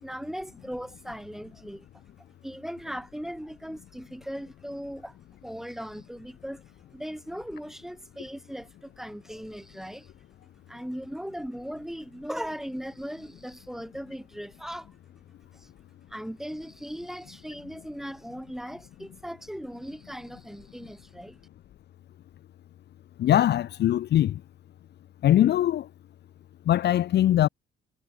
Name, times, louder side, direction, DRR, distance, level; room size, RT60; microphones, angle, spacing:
voice 1, 0.0-1.9 2.4-5.2 5.4-6.6 6.9-10.1 10.7-14.9 15.5-15.7 16.1-21.4, equal, ahead, 3.9 m, -38 dB
voice 2, 23.2-24.4 25.2-25.9 26.7-27.5, left 12 dB, 60° left, 0.5 m, -21 dB
cardioid pair, 90°, 20 cm